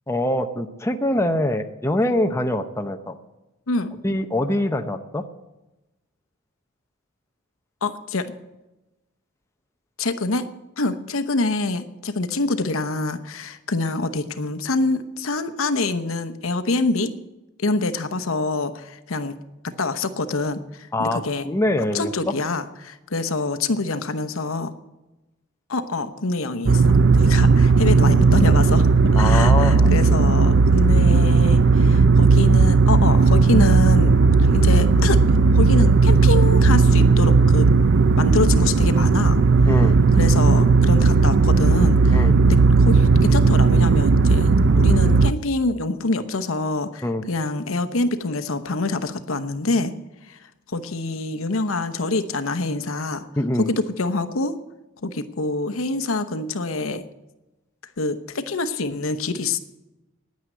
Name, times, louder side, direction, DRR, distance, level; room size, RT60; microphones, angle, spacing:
voice 1, 0.1-3.1 4.0-5.2 20.9-22.3 29.2-29.9 39.7-39.9 42.1-42.3 47.0-47.2 53.4-53.7, left 1 dB, 15° left, 6 dB, 0.7 m, -24 dB
voice 2, 7.8-8.3 10.0-10.5 10.8-17.1 17.6-19.4 19.6-21.5 21.9-24.7 25.7-28.9 29.1-35.2 35.5-37.7 38.2-39.4 40.1-49.9 50.3-50.4 50.7-53.3 53.6-54.6 55.0-57.0 58.0-59.6, left 3 dB, 75° left, 10 dB, 0.9 m, -25 dB
sound 1, 26.7-45.3, right 4 dB, 60° right, 0.5 m, -15 dB
10.0 x 9.4 x 9.5 m, 1.0 s
head